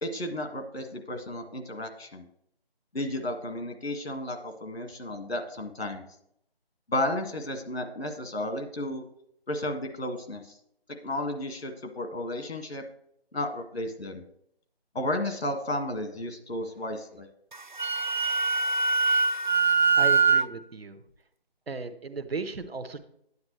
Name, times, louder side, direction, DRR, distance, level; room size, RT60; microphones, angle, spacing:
voice 1, 0.0-2.3 2.9-6.0 6.9-9.0 9.5-10.4 11.0-12.8 13.3-14.2 14.9-17.3, left 1 dB, 80° left, 6 dB, 1.7 m, -33 dB
Wind instrument woodwind instrument, 17.5-20.5, right 5 dB, 50° right, 0.4 m, -23 dB
voice 2, 20.0-21.0 21.7-23.0, right 4 dB, 70° right, 10 dB, 0.9 m, -35 dB
9.5 x 8.5 x 3.1 m, 0.72 s
figure-of-eight pair, 180°, 31 cm